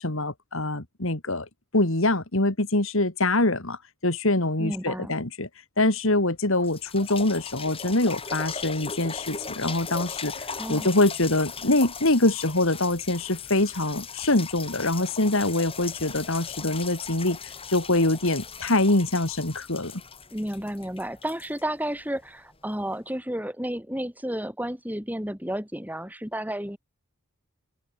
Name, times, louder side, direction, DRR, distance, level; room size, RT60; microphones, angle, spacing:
voice 1, 0.0-1.5 1.7-5.5 5.8-17.4 17.7-20.0, left 2 dB, 65° left, 2.7 m, -24 dB
voice 2, 4.6-5.1 10.5-10.9 20.3-26.8, right 1 dB, 5° right, 5.5 m, -32 dB
sound 1, 6.1-6.2 6.6-22.3 22.9-23.0, left 5 dB, 25° left, 6.2 m, -38 dB
open air
head